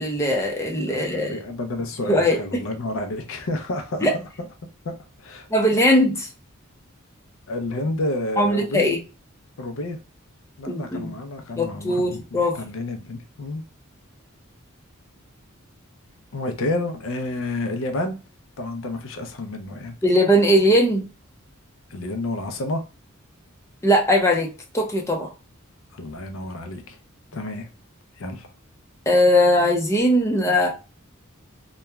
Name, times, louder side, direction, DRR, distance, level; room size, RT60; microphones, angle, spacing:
voice 1, 0.0-1.3 2.1-2.4 4.0-4.1 5.5-6.3 8.4-9.0 10.7-11.1 11.6-12.6 20.0-21.0 23.8-25.3 29.1-30.7, equal, 15° left, 0.6 m, -19 dB
voice 2, 0.9-4.3 4.8-5.5 7.5-8.9 9.6-10.0 10.6-13.6 16.3-18.2 18.6-20.0 20.6-20.7 21.9-22.8 25.9-27.0 27.3-27.7 28.2-28.5, left 2 dB, 70° left, 0.5 m, -30 dB
3.0 x 2.2 x 2.2 m
head